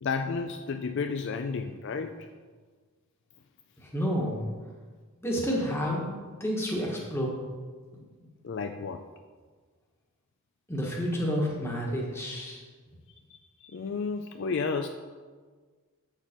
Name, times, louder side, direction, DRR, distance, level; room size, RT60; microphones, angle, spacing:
voice 1, 0.0-2.3 8.4-9.0 13.3-14.9, left 5 dB, 55° left, 6 dB, 0.4 m, -32 dB
voice 2, 3.9-4.3 5.2-6.1 6.4-7.3 10.7-12.6, equal, 10° left, -2 dB, 1.4 m, -29 dB
7.6 x 6.7 x 4.4 m, 1.5 s
head